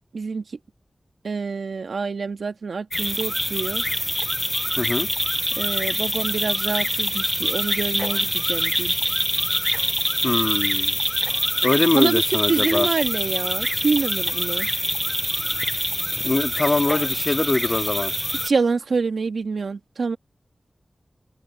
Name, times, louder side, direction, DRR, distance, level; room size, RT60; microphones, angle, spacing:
voice 1, 0.1-0.6 1.2-3.8 5.6-9.0 12.0-14.7 18.4-20.2, right 4 dB, 90° right, 2.0 m, -26 dB
sound 1, 2.9-18.5, equal, 5° left, 0.5 m, -25 dB
voice 2, 4.8-5.1 10.2-11.0 11.6-12.9 16.2-18.1, left 2 dB, 45° left, 1.9 m, -23 dB
wide cardioid pair, 65°, 0 cm